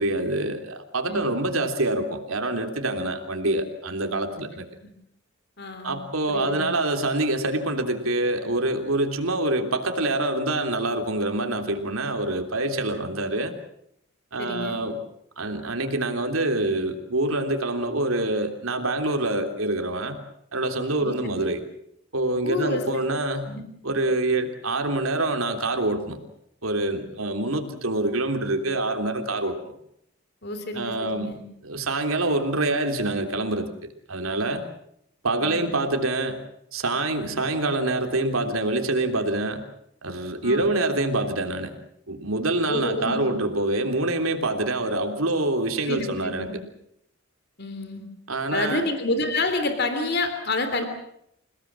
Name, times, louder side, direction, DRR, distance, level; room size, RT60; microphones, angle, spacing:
voice 1, 0.0-4.6 5.8-13.5 14.3-15.0 15.4-20.2 20.5-21.6 22.1-23.5 23.8-26.2 26.6-29.5 30.7-31.3 31.6-33.7 34.1-34.6 35.2-36.4 36.7-39.6 40.0-41.7 42.1-46.6 48.3-48.9, right 2 dB, 85° right, 5 dB, 3.4 m, -26 dB
voice 2, 5.6-6.0 6.3-6.7 14.4-14.8 21.0-21.1 22.4-22.8 23.5-23.6 27.2-27.3 30.4-31.4 35.4-35.7 40.4-40.7 42.7-43.4 45.9-46.5 47.6-48.1 48.5-50.8, left 2 dB, 50° left, 7 dB, 3.3 m, -28 dB
29.0 x 18.0 x 7.6 m, 0.74 s
head